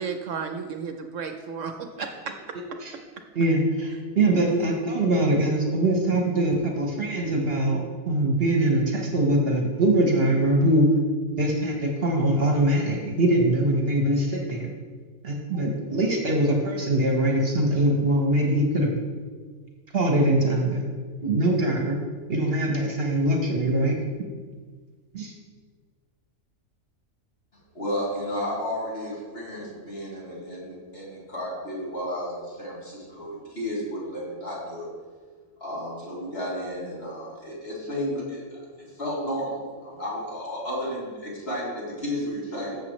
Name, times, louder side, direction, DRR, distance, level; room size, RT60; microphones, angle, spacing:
voice 1, 0.0-2.3, right 5 dB, 70° right, 6 dB, 1.0 m, -33 dB
voice 2, 3.3-10.9 11.4-14.7 15.2-18.9 19.9-20.8 21.2-22.0 22.3-23.9 25.1-25.3, right 1 dB, 50° right, 0 dB, 1.3 m, -22 dB
voice 3, 27.7-34.9 35.6-42.8, equal, 45° left, -7 dB, 3.4 m, -32 dB
14.0 x 7.2 x 3.2 m, 1.5 s
omnidirectional pair, 1.4 m